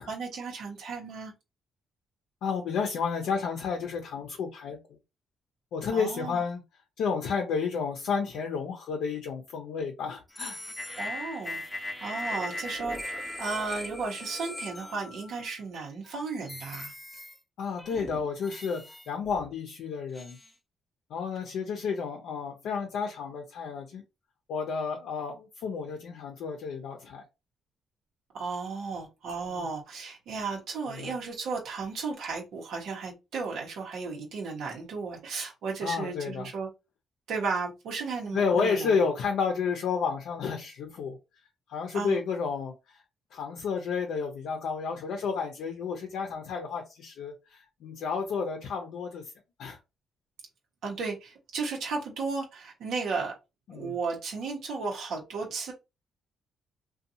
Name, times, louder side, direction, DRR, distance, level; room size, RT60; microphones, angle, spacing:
voice 1, 0.0-1.3 5.9-6.4 11.0-13.0 13.4-16.9 28.3-36.7 37.3-39.0 41.9-42.2 50.8-53.3 53.7-55.7, right 4 dB, 80° right, 0.8 m, -34 dB
voice 2, 2.4-4.8 5.7-6.6 7.0-10.6 17.6-20.4 21.1-24.0 24.5-27.2 29.5-29.7 30.9-31.1 35.8-36.5 38.3-41.2 41.7-42.7 43.3-49.2 49.6-49.8 53.7-53.9, left 5 dB, 80° left, 0.5 m, -31 dB
sound 1, 10.3-15.5 16.0-16.2 16.5-17.4 17.8-19.5 20.1-20.5, left 1 dB, 10° left, 0.6 m, -39 dB
2.6 x 2.2 x 2.7 m
cardioid pair, 90°, 0 cm